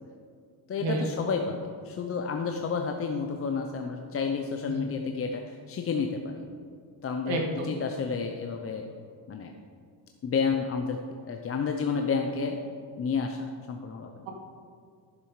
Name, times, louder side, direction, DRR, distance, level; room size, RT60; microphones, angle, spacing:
voice 1, 0.7-6.5 7.0-8.9 9.3-9.5 10.2-11.0 11.2-12.6 13.0-14.2, left 5 dB, 30° left, 3 dB, 0.6 m, -30 dB
voice 2, 7.2-7.7, right 3 dB, 90° right, 1 dB, 2.2 m, -30 dB
13.5 x 7.5 x 4.9 m, 2.2 s
cardioid pair, 145°, 44 cm